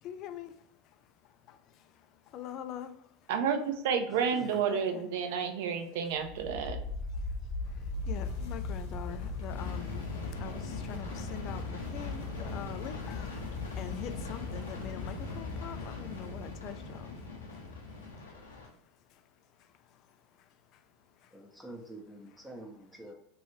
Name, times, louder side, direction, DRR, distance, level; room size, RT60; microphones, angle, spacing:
voice 1, 0.0-3.3 4.7-5.1 7.0-21.6, left 10 dB, 50° left, 9 dB, 0.4 m, -46 dB
voice 2, 3.3-6.8, right 7 dB, 65° right, 6 dB, 0.5 m, -30 dB
voice 3, 4.1-4.6 21.3-23.1, right 1 dB, 10° right, 0 dB, 0.7 m, -46 dB
sound 1, 6.2-16.9, left 3 dB, 65° left, 0.9 m, -39 dB
sound 2, 9.5-18.7, left 3 dB, 90° left, 0.7 m, -41 dB
3.1 x 2.6 x 3.0 m, 0.74 s
hypercardioid pair, 85°, 0 cm